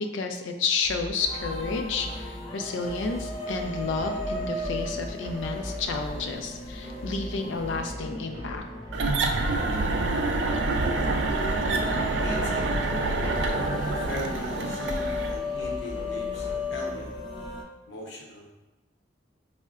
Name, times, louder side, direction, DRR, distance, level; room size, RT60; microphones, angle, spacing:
voice 1, 0.1-8.6, left 4 dB, 90° left, 5 dB, 0.4 m, -31 dB
sound 1, 0.8-16.8, equal, 25° right, 0.6 m, -39 dB
sound 2, 1.3-17.6, left 2 dB, 25° left, 0.4 m, -36 dB
sound 3, 8.9-15.4, right 3 dB, 75° right, 0.4 m, -27 dB
voice 2, 12.2-12.8 13.8-17.1 17.9-18.5, left 1 dB, 65° left, -2 dB, 0.8 m, -39 dB
5.4 x 2.1 x 2.4 m, 1.0 s
head